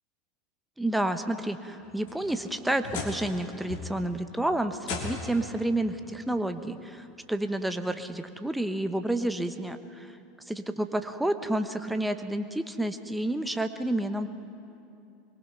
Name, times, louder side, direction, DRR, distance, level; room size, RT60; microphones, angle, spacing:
voice 1, 0.8-10.1 10.5-14.3, right 1 dB, 5° right, 8 dB, 1.0 m, -30 dB
sound 1, 1.8-3.4 3.7-4.2 4.8-5.5 6.7-6.8 7.4-7.5 9.1-9.2, left 4 dB, 60° left, 3.4 m, -38 dB
24.0 x 22.0 x 5.8 m, 2.6 s
figure-of-eight pair, 80°, 0 cm